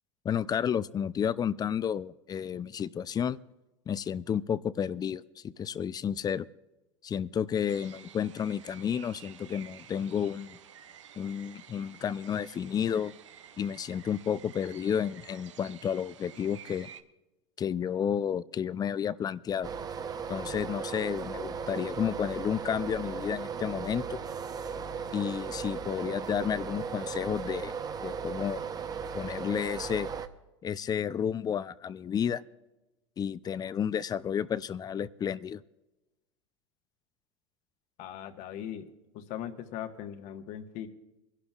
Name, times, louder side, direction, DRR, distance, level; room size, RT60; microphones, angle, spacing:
voice 1, 0.2-3.4 3.9-6.5 7.0-10.6 11.2-13.1 13.6-16.9 17.6-19.7 20.3-24.2 25.1-27.7 28.0-28.6 29.1-30.1 30.6-32.4 33.2-35.6, left 8 dB, 25° left, 18 dB, 0.5 m, -31 dB
sound 1, 7.7-17.0, right 9 dB, 85° right, 0.7 m, -51 dB
sound 2, 19.6-30.3, right 6 dB, 25° right, 0.8 m, -37 dB
voice 2, 38.0-38.9 39.1-40.9, left 10 dB, 55° left, 6 dB, 1.4 m, -39 dB
26.5 x 11.5 x 2.4 m, 1.0 s
hypercardioid pair, 90°, 15 cm